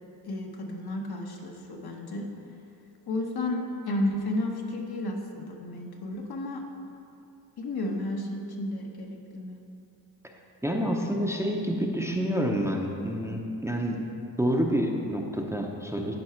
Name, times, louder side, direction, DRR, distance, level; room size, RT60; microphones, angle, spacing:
voice 1, 0.2-2.3 3.1-6.6 7.6-9.6, left 1 dB, 60° left, 1 dB, 1.2 m, -32 dB
voice 2, 10.6-14.0 14.4-16.2, equal, 5° right, 0 dB, 0.7 m, -28 dB
11.0 x 4.7 x 4.5 m, 2.6 s
cardioid pair, 75°, 43 cm